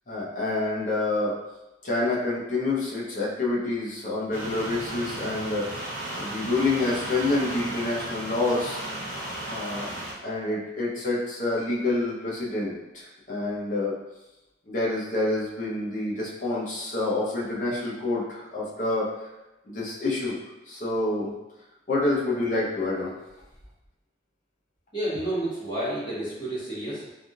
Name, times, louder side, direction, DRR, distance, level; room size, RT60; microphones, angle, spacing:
voice 1, 0.1-1.4 1.8-5.7 6.2-8.8 9.5-10.0 10.2-14.0 14.7-19.1 19.7-20.4 20.7-21.3 21.9-23.2, left 2 dB, 45° left, -5 dB, 0.8 m, -27 dB
sound 1, 4.3-10.1, right 1 dB, 50° right, 0.8 m, -35 dB
voice 2, 24.9-27.2, right 1 dB, 25° left, -11 dB, 1.5 m, -30 dB
3.4 x 2.7 x 2.4 m, 0.99 s
head